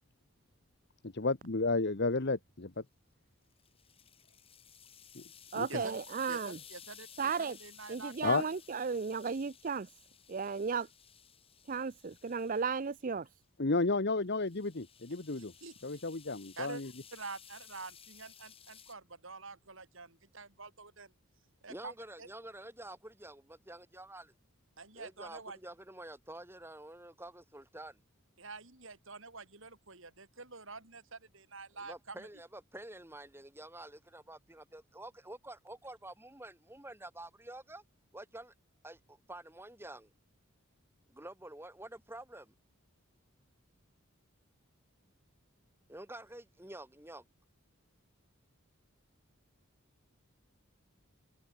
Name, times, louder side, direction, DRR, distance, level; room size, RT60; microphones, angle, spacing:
voice 1, 1.2-2.8 5.1-5.2 5.5-5.8 8.2-8.4 13.6-15.5 15.8-16.9, left 3 dB, 50° left, 1.1 m, -32 dB
sound 1, 3.5-13.1 14.2-18.9, left 8 dB, 25° left, 5.8 m, -56 dB
voice 2, 5.5-6.6 7.2-7.6 7.9-9.9 10.3-10.9 11.7-13.3, right 5 dB, 40° right, 0.5 m, -34 dB
voice 3, 6.3-8.4 15.4-15.7 16.6-16.8 17.1-21.1 21.6-21.9 22.2-22.3 24.8-25.6 28.4-32.3, right 3 dB, 60° right, 4.4 m, -47 dB
voice 4, 21.7-24.3 24.9-28.0 31.7-37.8 38.1-38.5 38.8-40.1 41.1-42.5 45.9-47.3, right 1 dB, 10° right, 2.7 m, -49 dB
head